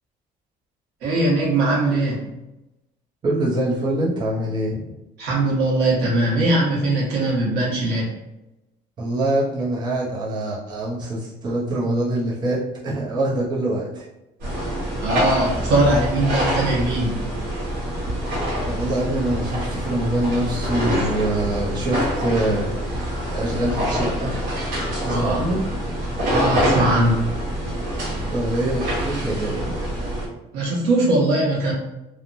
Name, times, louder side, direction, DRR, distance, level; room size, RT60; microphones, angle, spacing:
voice 1, 1.0-2.2 5.2-8.1 15.0-17.1 25.1-25.4 26.3-27.2 30.5-31.7, right 2 dB, 90° right, -5 dB, 1.1 m, -20 dB
voice 2, 3.2-4.8 9.0-14.0 18.6-24.4 25.0-25.6 28.3-29.8, right 1 dB, 25° right, -7 dB, 0.6 m, -24 dB
sound 1, 14.4-30.3, equal, 65° right, 1.1 m, -25 dB
2.9 x 2.1 x 2.5 m, 0.96 s
cardioid pair, 175°, 16 cm